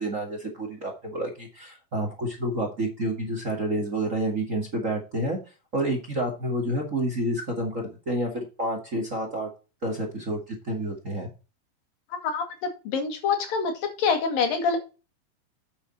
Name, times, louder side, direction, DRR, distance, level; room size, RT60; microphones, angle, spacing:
voice 1, 0.0-5.4 5.7-9.5 9.8-11.3, right 1 dB, 30° right, 3 dB, 1.8 m, -29 dB
voice 2, 12.1-13.7 14.0-14.8, left 5 dB, 80° left, 6 dB, 3.8 m, -26 dB
8.8 x 7.4 x 4.1 m, 0.31 s
omnidirectional pair, 4.0 m